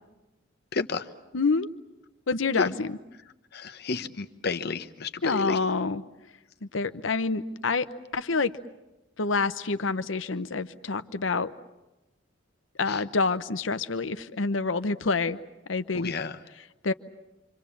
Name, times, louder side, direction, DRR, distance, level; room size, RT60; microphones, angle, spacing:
voice 1, 0.7-1.1 2.6-2.7 3.5-5.6 12.9-13.0 15.9-16.4, left 4 dB, 55° left, 9 dB, 1.0 m, -31 dB
voice 2, 1.3-1.7 2.3-3.0 5.2-6.0 6.6-7.9 8.1-8.5 9.2-11.5 12.8-15.4 15.7-16.1 16.8-16.9, left 4 dB, 90° left, 12 dB, 0.9 m, -27 dB
27.5 x 25.5 x 7.2 m, 1.0 s
head